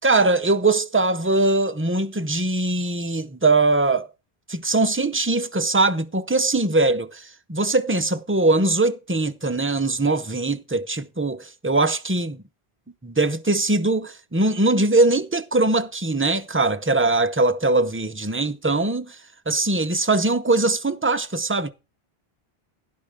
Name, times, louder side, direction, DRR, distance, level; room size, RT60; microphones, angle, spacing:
voice 1, 0.0-4.1 4.5-12.4 13.0-19.2 19.5-21.7, right 2 dB, 15° right, 0.5 m, -21 dB
12.0 x 10.5 x 3.6 m
omnidirectional pair, 1.0 m